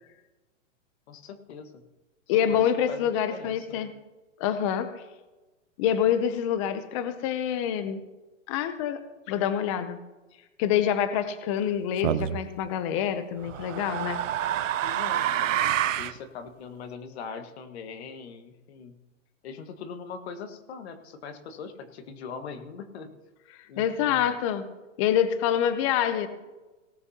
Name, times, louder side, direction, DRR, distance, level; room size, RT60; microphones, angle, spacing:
voice 1, 1.1-1.8 2.3-3.9 14.8-19.0 19.4-23.2 23.7-24.2, left 5 dB, 55° left, 8 dB, 1.5 m, -41 dB
voice 2, 2.3-3.9 4.4-5.0 5.8-8.0 8.5-9.0 9.3-10.0 10.6-14.2 23.8-24.6 25.0-26.3, left 9 dB, 25° left, 11 dB, 0.6 m, -26 dB
sound 1, 12.0-12.4 13.4-16.2, right 11 dB, 75° right, 0.8 m, -27 dB
18.0 x 12.0 x 2.8 m, 1.1 s
hypercardioid pair, 155°, 38 cm